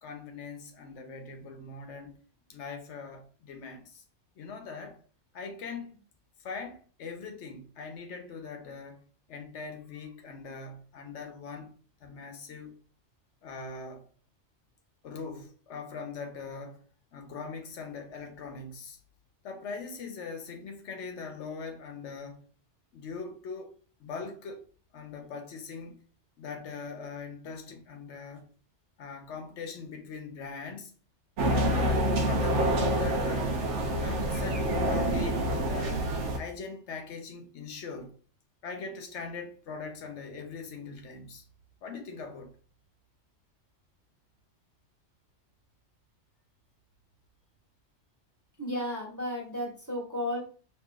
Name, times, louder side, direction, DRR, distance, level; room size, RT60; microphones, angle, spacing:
voice 1, 0.0-2.2 2.5-4.0 4.4-5.0 5.3-6.0 6.4-9.0 9.3-12.8 13.4-14.0 15.0-16.8 17.1-19.0 19.4-22.4 22.9-23.7 24.0-24.6 24.9-26.0 26.4-28.5 29.0-30.9 31.4-33.6 34.0-38.1 38.6-41.4 41.8-42.5, left 4 dB, 80° left, 1.0 m, -41 dB
sound 1, 31.4-36.4, right 1 dB, 75° right, 1.0 m, -27 dB
voice 2, 48.6-50.4, left 1 dB, 15° right, 1.2 m, -33 dB
4.7 x 3.0 x 2.4 m
omnidirectional pair, 1.2 m